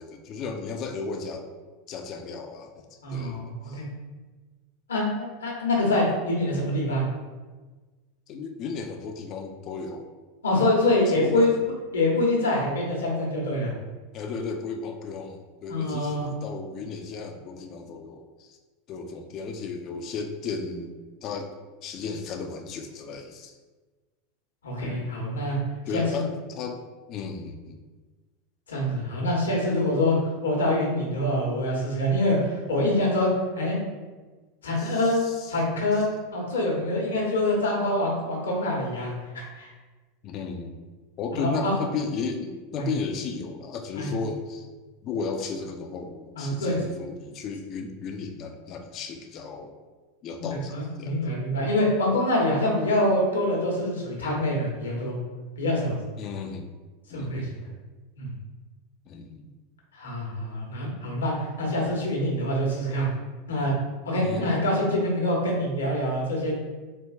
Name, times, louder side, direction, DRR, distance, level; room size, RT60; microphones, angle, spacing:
voice 1, 0.0-1.5 1.9-3.8 8.3-10.1 11.1-11.5 14.1-18.6 18.9-20.9 21.2-21.5 21.8-23.6 25.9-26.8 27.1-27.8 34.8-35.5 40.2-40.7 41.2-44.7 45.0-49.8 50.2-51.2 56.2-56.7 57.1-57.5 59.1-59.5 64.2-64.5, left 4 dB, 45° left, 5 dB, 0.5 m, -34 dB
voice 2, 3.0-3.9 4.9-7.1 10.4-11.5 11.9-13.7 15.7-16.2 24.6-25.6 25.9-26.3 28.7-30.2 30.4-33.8 34.6-35.2 35.5-39.7 41.4-41.7 42.8-42.9 44.0-44.1 46.3-46.8 50.7-55.2 55.6-56.0 57.1-57.5 58.2-58.3 59.9-63.1 63.5-63.7 64.0-66.5, left 1 dB, 80° left, -2 dB, 1.0 m, -25 dB
4.4 x 2.5 x 2.4 m, 1.3 s
hypercardioid pair, 85°, 0 cm